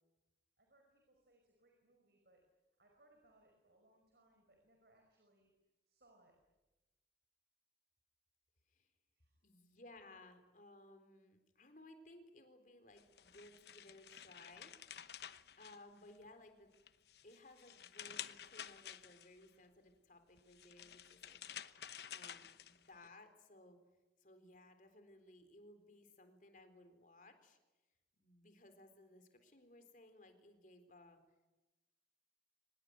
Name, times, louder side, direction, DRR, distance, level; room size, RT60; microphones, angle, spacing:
voice 1, 0.6-2.4 2.8-5.5 5.9-6.4 8.8-8.9 9.1-9.5, right 1 dB, 65° right, 2 dB, 5.3 m, -71 dB
voice 2, 9.4-14.7 15.6-16.7 17.2-21.4 22.1-23.8 24.2-27.6 28.1-31.2, left 1 dB, 45° left, 7 dB, 3.8 m, -60 dB
sound 1, 13.0-16.3 16.7-19.5 20.4-23.1, left 9 dB, 65° left, 0.9 m, -51 dB
25.0 x 20.5 x 9.5 m, 1.1 s
head